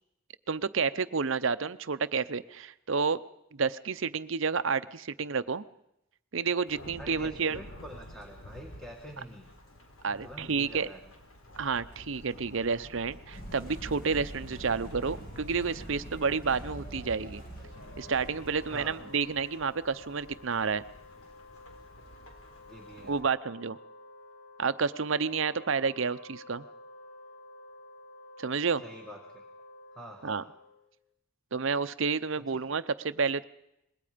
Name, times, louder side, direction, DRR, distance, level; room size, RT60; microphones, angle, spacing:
voice 1, 0.5-3.2 3.5-5.6 6.3-7.6 10.0-10.9 11.6-17.4 18.0-20.8 23.0-23.8 24.6-26.6 28.4-28.8 30.2-30.4 31.5-33.4, right 5 dB, 65° right, 13 dB, 0.7 m, -30 dB
Thunderstorm / Rain, 6.7-23.2, left 1 dB, 85° left, 4.3 m, -51 dB
voice 2, 7.0-9.5 10.1-11.0 18.7-19.2 22.7-23.3 28.8-29.4 30.0-30.5 32.5-32.6, equal, ahead, 1 dB, 1.8 m, -46 dB
sound 1, 13.3-19.0, right 1 dB, 45° left, 6.0 m, -44 dB
Wind instrument woodwind instrument, 17.6-31.0, left 2 dB, 65° left, 2.1 m, -51 dB
26.5 x 21.0 x 5.2 m, 0.82 s
head